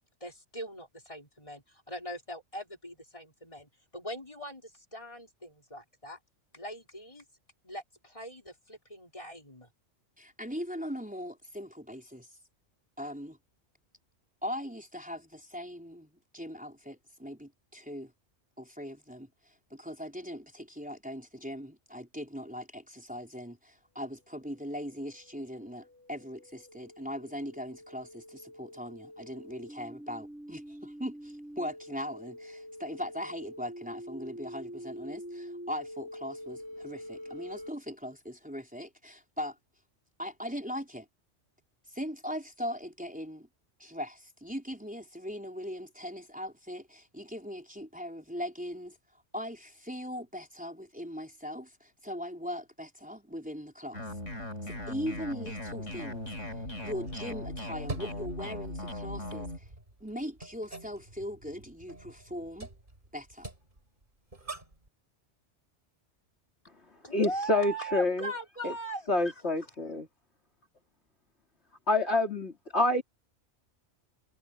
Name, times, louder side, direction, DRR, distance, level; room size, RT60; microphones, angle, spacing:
voice 1, 0.2-6.2 6.5-7.3 7.6-9.7 67.0-69.1, right 1 dB, 25° left, 5.2 m, -41 dB
voice 2, 10.2-12.3 13.0-13.4 14.4-18.1 18.6-19.3 19.7-39.6 40.2-41.1 41.9-43.5 43.8-49.0 49.3-54.0 54.6-56.3 56.8-59.7 60.0-62.7 63.1-63.5, equal, 5° right, 4.3 m, -40 dB
sound 1, 24.4-37.7, equal, 85° right, 6.2 m, -46 dB
sound 2, 53.9-59.6, left 1 dB, 85° left, 5.0 m, -38 dB
sound 3, 55.8-64.9, right 2 dB, 45° right, 4.1 m, -47 dB
voice 3, 67.1-68.3 68.6-68.7 69.1-70.1 71.9-73.0, left 2 dB, 65° left, 3.4 m, -27 dB
omnidirectional pair, 1.2 m